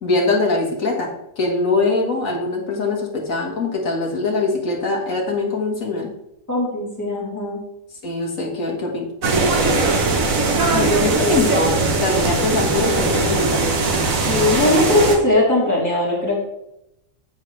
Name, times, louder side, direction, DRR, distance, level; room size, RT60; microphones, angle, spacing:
voice 1, 0.0-1.1 1.4-6.1 8.0-9.1 11.0-13.6, left 3 dB, 75° left, -1 dB, 2.3 m, -22 dB
voice 2, 6.5-7.6 10.7-11.5 14.3-16.4, left 2 dB, 10° left, -7 dB, 3.6 m, -20 dB
sound 1, 9.2-15.2, right 3 dB, 80° right, 1.7 m, -19 dB
13.5 x 5.5 x 3.3 m, 0.84 s
omnidirectional pair, 1.4 m